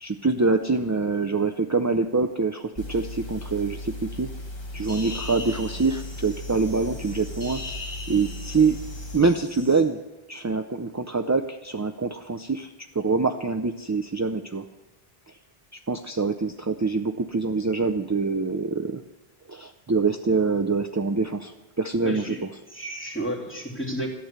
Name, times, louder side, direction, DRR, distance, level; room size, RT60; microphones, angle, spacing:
voice 1, 0.0-4.3 4.7-7.6 8.1-8.8 9.1-10.0 10.3-14.6 15.9-19.0 19.5-22.3, right 4 dB, 25° right, 6 dB, 0.4 m, -25 dB
sound 1, 2.8-9.2, left 1 dB, 25° left, 1.3 m, -37 dB
sound 2, 4.8-9.8, left 2 dB, 80° left, 3.0 m, -40 dB
voice 2, 22.0-22.4 22.7-24.1, right 1 dB, 10° left, -2 dB, 2.6 m, -31 dB
13.5 x 11.0 x 8.0 m, 1.1 s
omnidirectional pair, 1.0 m